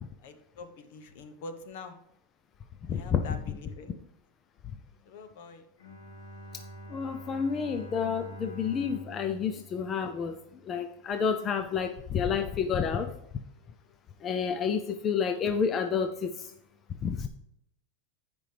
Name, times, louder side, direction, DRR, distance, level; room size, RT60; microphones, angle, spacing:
voice 1, 0.2-2.0 2.9-4.1 5.1-5.7 9.5-9.6, left 3 dB, 60° left, 8 dB, 1.1 m, -45 dB
voice 2, 2.8-3.2 6.9-13.1 14.2-16.5 17.0-17.3, left 6 dB, 25° left, 7 dB, 0.5 m, -30 dB
Bowed string instrument, 5.8-10.8, right 1 dB, 85° left, 3.1 m, -46 dB
14.5 x 5.1 x 3.4 m, 0.78 s
supercardioid pair, 155°, 0 cm